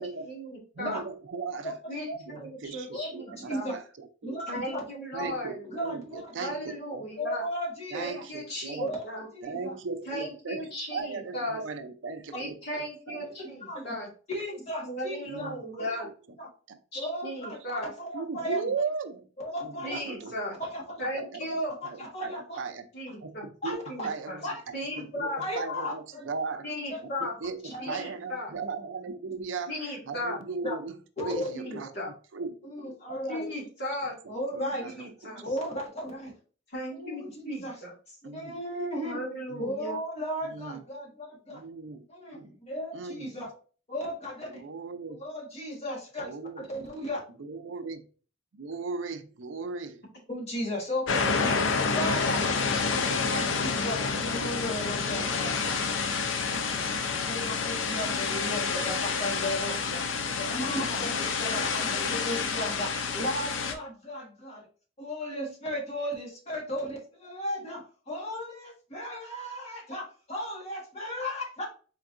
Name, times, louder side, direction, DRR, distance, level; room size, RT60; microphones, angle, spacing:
voice 1, 0.2-1.0 1.9-3.7 4.5-5.7 6.4-7.4 7.9-9.3 10.1-11.6 12.3-14.1 14.8-16.1 16.9-17.9 18.4-18.7 19.8-20.6 21.0-21.8 22.9-23.5 23.9-24.4 24.7-25.4 26.6-27.3 27.8-28.5 29.7-30.4 31.5-32.1 33.3-34.1 34.8-35.4 36.7-37.9 39.0-40.0, equal, 60° left, -3 dB, 2.0 m, -36 dB
voice 2, 0.8-1.7 2.1-4.4 5.1-7.0 7.9-8.9 9.4-10.6 10.9-13.3 15.3-15.9 16.7-16.8 18.1-19.2 19.6-20.4 21.1-22.9 23.2-24.5 25.0-25.3 25.6-26.7 27.0-29.8 30.1-33.2 34.2-35.3 38.2-38.5 39.5-39.6 40.4-40.8 41.5-42.1 42.3-42.6 42.9-43.3 44.5-45.2 46.2-46.7 47.4-48.1 48.5-50.0 53.1-53.2, right 4 dB, 85° right, 9 dB, 0.5 m, -37 dB
voice 3, 2.9-3.8 4.2-4.8 5.2-5.3 5.6-6.3 7.2-8.2 8.8-9.0 9.3-9.7 13.4-14.0 14.3-16.0 16.4-16.5 16.9-18.6 19.4-20.0 20.6-20.8 21.8-22.6 23.6-24.1 24.4-24.6 25.4-26.3 26.9-27.0 27.7-28.0 30.6-30.8 31.2-31.8 32.6-33.5 34.3-34.9 35.4-36.3 36.9-37.7 38.3-39.2 39.6-41.6 42.1-43.5 43.9-44.6 45.2-47.2 50.3-51.4 51.9-52.5 53.1-64.7 65.0-71.7, equal, 35° left, -2 dB, 1.5 m, -35 dB
sound 1, 51.1-63.7, left 5 dB, 90° left, 0.6 m, -29 dB
4.4 x 3.9 x 2.5 m, 0.38 s
head